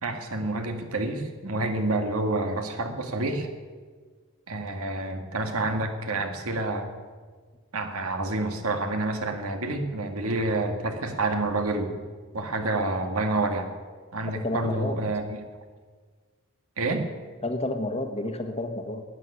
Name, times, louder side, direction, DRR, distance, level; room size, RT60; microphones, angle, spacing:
voice 1, 0.0-3.5 4.5-6.9 7.7-12.0 12.3-13.7 14.1-15.4 16.8-17.1, right 2 dB, 85° right, 5 dB, 1.9 m, -28 dB
voice 2, 14.3-15.0 17.4-19.0, left 2 dB, 30° left, 6 dB, 1.3 m, -30 dB
13.0 x 9.7 x 9.8 m, 1.5 s
head